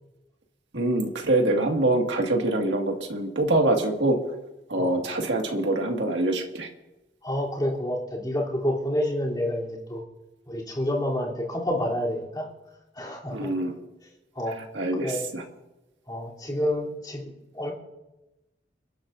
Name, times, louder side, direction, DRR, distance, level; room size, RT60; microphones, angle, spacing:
voice 1, 0.7-4.2 4.7-6.7 13.3-13.7 14.7-15.4, right 2 dB, 85° right, 1 dB, 2.0 m, -24 dB
voice 2, 7.2-10.0 10.5-12.5 13.0-13.5 14.3-14.5 15.0-15.3 16.1-17.7, left 1 dB, 25° left, -5 dB, 3.3 m, -28 dB
29.5 x 12.0 x 2.6 m, 1.0 s
head